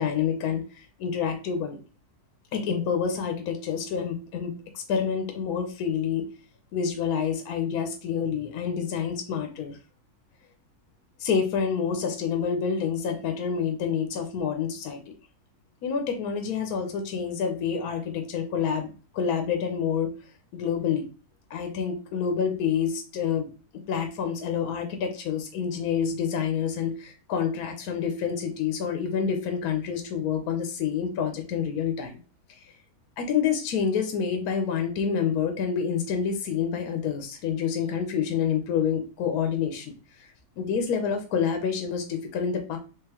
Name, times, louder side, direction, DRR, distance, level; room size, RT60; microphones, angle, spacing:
voice 1, 0.0-1.8 2.5-6.3 6.7-9.8 11.2-15.0 15.8-20.1 20.5-21.1 21.5-23.5 23.9-32.2 32.5-32.6 33.2-39.9 40.2-40.3 40.6-42.8, left 7 dB, 75° left, 5 dB, 1.1 m, -28 dB
3.7 x 3.2 x 2.8 m, 0.35 s
omnidirectional pair, 1.6 m